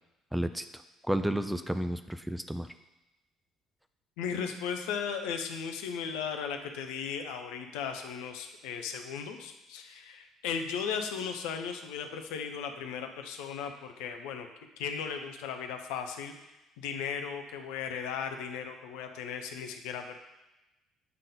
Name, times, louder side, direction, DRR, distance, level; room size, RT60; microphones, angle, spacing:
voice 1, 0.3-2.7, right 1 dB, 5° right, 9 dB, 0.4 m, -31 dB
voice 2, 4.2-14.5 14.8-16.3 16.8-20.2, left 7 dB, 65° left, 5 dB, 0.7 m, -36 dB
8.2 x 3.7 x 5.2 m, 0.99 s
figure-of-eight pair, 50°, 0 cm